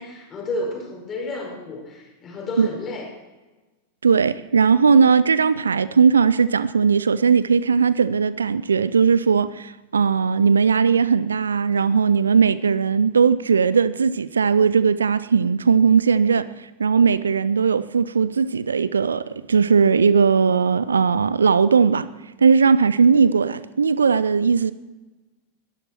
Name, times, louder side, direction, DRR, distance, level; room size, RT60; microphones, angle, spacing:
voice 1, 0.0-3.1, left 2 dB, 25° left, 5.9 m, -31 dB
voice 2, 4.0-16.5 16.8-22.1 22.4-24.7, right 6 dB, 70° right, 0.5 m, -18 dB
21.5 x 13.0 x 4.5 m
figure-of-eight pair, 90°, 0 cm